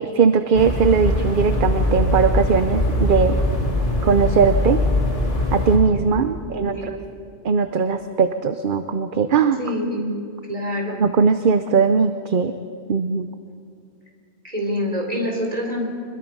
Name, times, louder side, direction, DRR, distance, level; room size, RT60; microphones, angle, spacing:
voice 1, 0.0-3.4 4.0-4.8 5.5-6.9 7.4-9.6 10.9-12.5 12.9-13.3, right 5 dB, 50° right, 9 dB, 0.9 m, -19 dB
sound 1, 0.5-5.8, left 1 dB, 60° left, 3.0 m, -21 dB
voice 2, 6.5-7.0 9.6-10.2 10.5-11.0 14.4-15.8, equal, 35° right, 0 dB, 4.5 m, -26 dB
25.0 x 21.5 x 5.5 m, 2.4 s
omnidirectional pair, 1.1 m